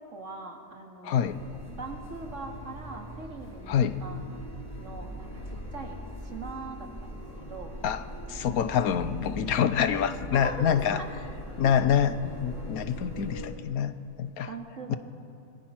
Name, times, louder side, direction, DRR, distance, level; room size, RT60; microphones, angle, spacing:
voice 1, 0.0-1.3 1.8-4.3 4.8-7.7 10.3-11.1 11.6-11.7 14.5-15.0, right 3 dB, 60° right, 2 dB, 2.5 m, -41 dB
voice 2, 1.0-1.4 3.7-4.0 7.8-8.0 8.3-11.0 11.6-14.5 14.9-15.0, left 8 dB, 90° left, 12 dB, 1.3 m, -26 dB
sound 1, 1.2-13.5, equal, 10° left, 4.0 m, -41 dB
26.0 x 20.5 x 5.9 m, 2.6 s
omnidirectional pair, 1.5 m